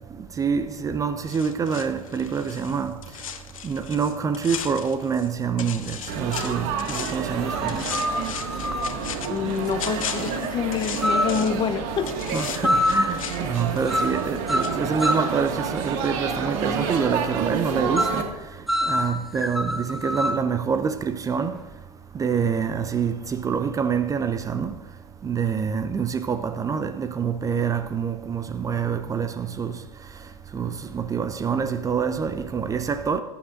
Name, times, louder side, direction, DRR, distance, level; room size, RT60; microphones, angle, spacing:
voice 1, 0.4-2.9 3.6-7.8 12.3-18.2 18.9-21.6 22.1-24.7 25.2-29.7 30.5-33.2, right 6 dB, 20° right, 0.6 m, -26 dB
sound 1, 1.3-5.3 5.6-7.3 7.7-11.7 12.0-14.4 14.6-14.7, left 8 dB, 70° left, 1.0 m, -36 dB
Laughter / Chatter / Crowd, 6.1-18.2, right 6 dB, 50° right, 1.8 m, -29 dB
sound 2, 7.4-9.0 11.0-11.5 12.6-13.2 13.9-14.2 14.5-15.4 18.0-18.3 18.7-20.5, left 1 dB, ahead, 1.0 m, -25 dB
voice 2, 9.3-12.1 12.6-12.7, left 6 dB, 25° left, 0.8 m, -27 dB
20.5 x 9.9 x 2.5 m
figure-of-eight pair, 80°, 18 cm